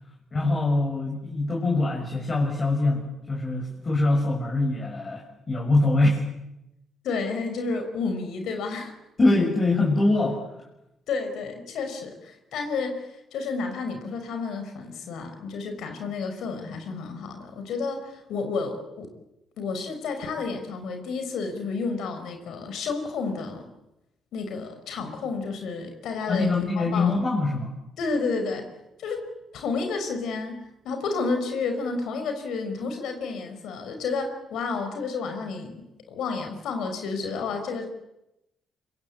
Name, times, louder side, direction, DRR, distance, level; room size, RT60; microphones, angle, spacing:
voice 1, 0.3-6.2 9.2-10.4 26.3-27.7, left 2 dB, 35° left, -1 dB, 6.6 m, -23 dB
voice 2, 7.0-8.9 11.1-19.1 19.6-23.7 24.3-27.2 28.0-28.7 29.0-29.3 29.5-37.9, left 4 dB, 80° left, 6 dB, 5.1 m, -31 dB
26.0 x 23.5 x 8.6 m, 0.89 s
cardioid pair, 90°, 0 cm